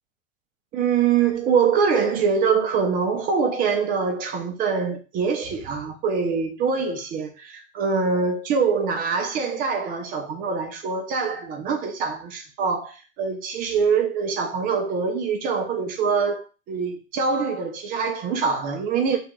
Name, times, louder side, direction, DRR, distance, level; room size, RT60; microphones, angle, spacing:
voice 1, 0.7-19.2, right 5 dB, 25° right, 0.4 m, -24 dB
2.4 x 2.3 x 2.8 m
hypercardioid pair, 100°, 41 cm